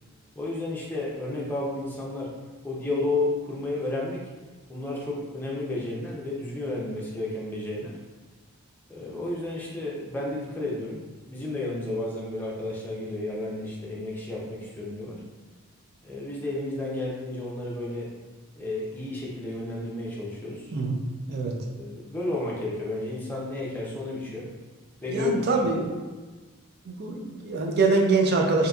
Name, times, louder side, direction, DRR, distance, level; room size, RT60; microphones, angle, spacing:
voice 1, 0.4-2.3 2.6-4.2 4.7-7.9 8.9-15.2 16.0-18.1 18.6-20.7 21.8-24.5 25.0-25.3 25.6-25.7, left 2 dB, 10° left, -5 dB, 0.5 m, -32 dB
voice 2, 25.1-25.9 26.9-28.7, right 3 dB, 45° right, 1 dB, 0.4 m, -24 dB
3.8 x 2.7 x 2.3 m, 1.3 s
head